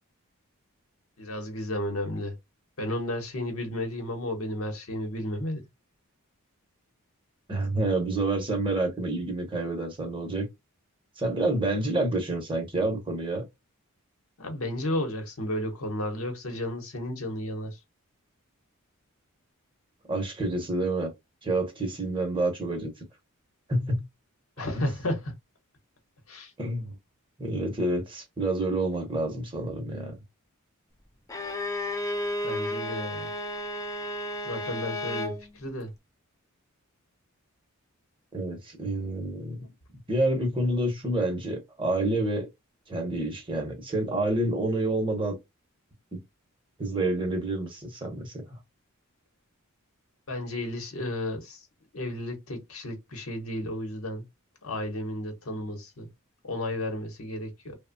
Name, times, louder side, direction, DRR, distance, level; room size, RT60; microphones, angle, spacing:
voice 1, 1.2-2.4 2.8-5.6 14.4-17.8 24.6-25.3 26.3-26.5 32.4-33.3 34.4-35.9 50.3-51.6 51.9-54.2 54.6-56.1 56.4-57.7, left 1 dB, 70° left, 0.9 m, -33 dB
voice 2, 7.5-10.5 11.2-13.4 20.1-21.1 21.4-22.9 23.7-24.1 24.7-24.9 26.6-26.9 27.4-30.1 38.3-39.7 40.1-42.5 42.9-45.4 46.1-46.2 46.8-48.6, right 2 dB, 25° right, 0.8 m, -28 dB
Bowed string instrument, 31.3-35.4, left 1 dB, 15° left, 0.4 m, -32 dB
2.9 x 2.1 x 2.5 m
head